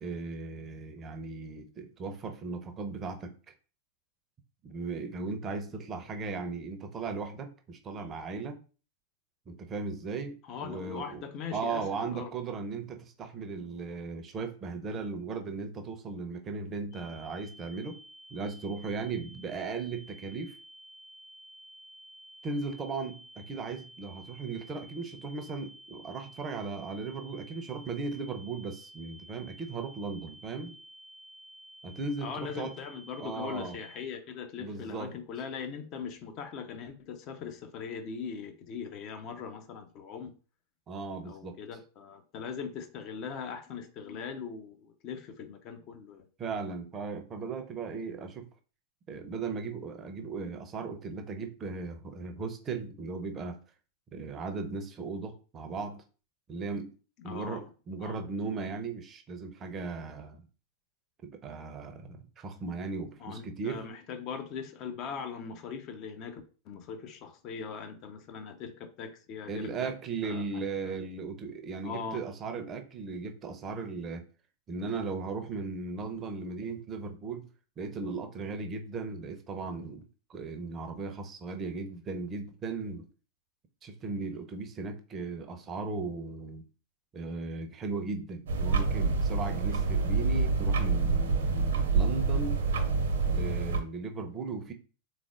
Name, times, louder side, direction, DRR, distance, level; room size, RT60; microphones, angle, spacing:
voice 1, 0.0-3.3 4.6-8.6 9.5-11.2 11.5-18.0 18.3-20.6 22.4-30.7 31.8-32.7 33.2-33.8 34.6-35.1 40.9-41.6 46.4-48.5 49.1-53.6 54.1-56.0 56.5-56.9 57.2-60.4 61.2-63.9 69.5-74.2 74.7-77.5 77.8-80.0 80.3-83.1 83.8-86.6 87.1-92.6 93.2-94.7, right 4 dB, 25° right, 0.6 m, -37 dB
voice 2, 10.4-12.3 32.2-40.4 41.2-46.3 57.2-57.7 58.0-58.2 63.2-66.4 66.7-69.9 70.2-70.4 70.8-71.0 71.8-72.2, left 6 dB, 40° left, 0.6 m, -40 dB
sound 1, 16.9-34.1, right 1 dB, 70° left, 1.3 m, -52 dB
sound 2, 88.5-93.8, right 4 dB, 60° right, 0.8 m, -27 dB
3.7 x 3.2 x 2.4 m
figure-of-eight pair, 90°, 0 cm